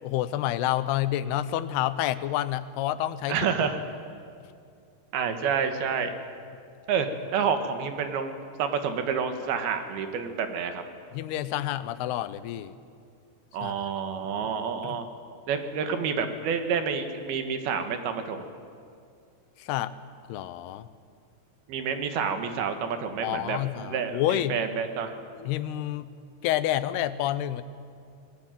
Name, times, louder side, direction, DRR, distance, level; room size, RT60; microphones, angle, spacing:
voice 1, 0.0-3.4 11.1-12.7 13.6-13.8 14.8-15.0 19.6-19.9 20.3-20.9 23.2-24.6 25.4-26.1 26.4-27.6, left 13 dB, 90° left, 14 dB, 2.9 m, -28 dB
voice 2, 3.3-3.8 5.1-6.1 6.9-7.1 7.3-10.8 13.5-15.1 15.5-18.5 21.7-25.1, right 6 dB, 75° right, 7 dB, 3.4 m, -29 dB
24.5 x 19.5 x 9.2 m, 2.4 s
omnidirectional pair, 4.5 m